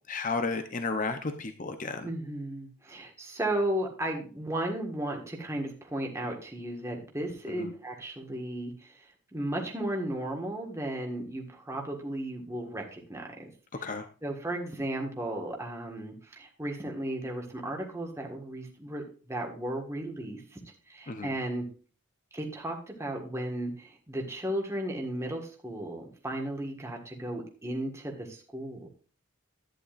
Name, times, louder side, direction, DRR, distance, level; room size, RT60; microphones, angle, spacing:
voice 1, 0.1-2.1 7.6-7.7 13.8-14.1 21.1-21.3, left 3 dB, 35° left, 8 dB, 0.7 m, -32 dB
voice 2, 2.0-13.5 14.2-21.7 22.3-28.9, right 1 dB, 10° right, 0 dB, 1.6 m, -35 dB
11.5 x 9.8 x 2.5 m, 0.37 s
head